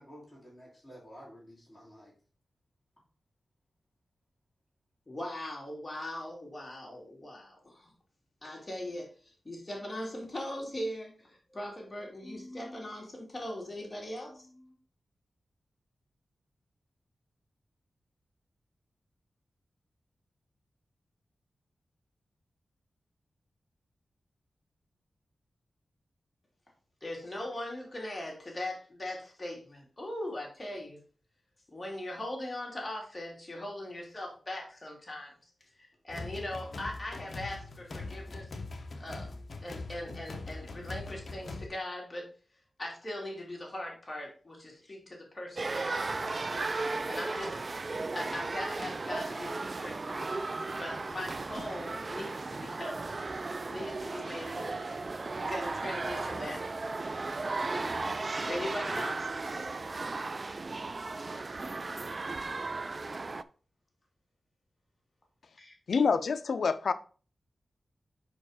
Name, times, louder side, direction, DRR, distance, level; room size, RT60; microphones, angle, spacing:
voice 1, 0.0-2.1, equal, 5° left, 3.2 m, -51 dB
voice 2, 5.1-7.9 8.4-14.7 27.0-31.0 31.7-35.3 35.8-38.5 39.0-39.3 39.6-42.3 42.8-46.4 47.1-47.6 48.1-50.4 50.7-54.9 55.3-56.7 58.5-59.3 65.6-65.7, left 1 dB, 25° left, 2.5 m, -40 dB
sound 1, 36.1-41.7, left 3 dB, 50° left, 0.9 m, -42 dB
sound 2, 45.6-63.4, right 3 dB, 40° right, 0.3 m, -35 dB
voice 3, 65.9-66.9, left 5 dB, 70° left, 0.5 m, -27 dB
5.7 x 4.6 x 4.8 m
wide cardioid pair, 115°, 0 cm